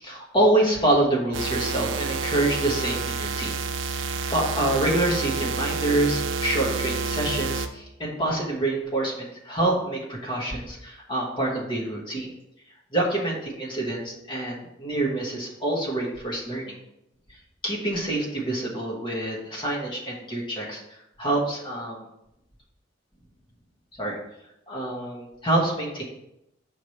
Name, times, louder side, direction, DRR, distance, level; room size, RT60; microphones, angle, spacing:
voice 1, 0.0-3.6 3.9-12.3 12.9-16.8 17.6-20.8 21.2-22.1 24.0-24.2 24.7-26.0, right 1 dB, 25° left, -3 dB, 1.2 m, -26 dB
sound 1, 1.3-7.7, right 4 dB, 90° right, 0.5 m, -29 dB
5.7 x 3.2 x 5.6 m, 0.83 s
head